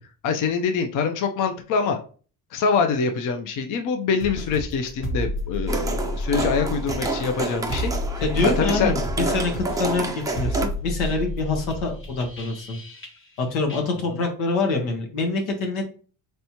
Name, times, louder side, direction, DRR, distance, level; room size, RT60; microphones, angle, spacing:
voice 1, 0.2-2.0 2.5-7.9 8.4-8.9, left 5 dB, 45° left, 5 dB, 0.6 m, -24 dB
sound 1, 4.2-13.4 13.7-13.8, left 1 dB, 30° left, 1.1 m, -31 dB
sound 2, 5.7-10.7, right 3 dB, 10° right, 0.4 m, -29 dB
voice 2, 8.2-12.8 13.4-15.8, left 3 dB, 90° left, 2 dB, 1.4 m, -25 dB
4.2 x 3.3 x 2.9 m, 0.39 s
cardioid pair, 115°, 43 cm